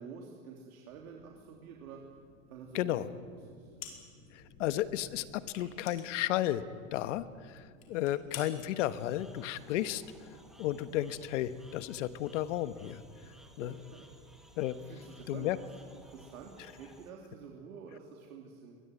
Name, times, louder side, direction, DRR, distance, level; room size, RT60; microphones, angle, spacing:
voice 1, 0.0-2.0 2.5-3.8 7.9-8.0 13.2-14.1 14.8-18.8, right 6 dB, 85° right, 0 dB, 3.3 m, -49 dB
sound 1, 0.9-12.8, left 2 dB, 45° left, 6.4 m, -60 dB
voice 2, 2.7-3.1 4.3-6.6 6.9-10.0 10.6-13.0 13.6-13.7 14.6-14.8 15.3-15.6, left 13 dB, 60° left, 13 dB, 1.3 m, -33 dB
sound 2, 3.8-4.3 4.6-4.7 5.5-6.9 7.2-7.4 7.8-8.5, left 8 dB, 80° left, 5.1 m, -47 dB
sound 3, 8.8-17.1, right 1 dB, ahead, 1.6 m, -58 dB
23.0 x 21.5 x 9.4 m, 2.1 s
supercardioid pair, 160°, 41 cm